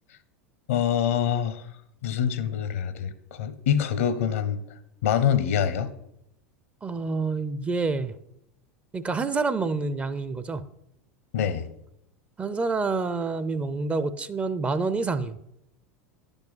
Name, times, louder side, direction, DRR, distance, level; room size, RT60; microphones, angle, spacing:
voice 1, 0.7-1.7 2.0-4.6 5.0-5.9 11.3-11.7, left 8 dB, 65° left, 14 dB, 0.8 m, -25 dB
voice 2, 6.8-8.1 8.9-10.6 12.4-15.4, right 4 dB, 15° right, 13 dB, 0.5 m, -27 dB
10.5 x 5.3 x 5.6 m, 0.81 s
figure-of-eight pair, 85°, 8 cm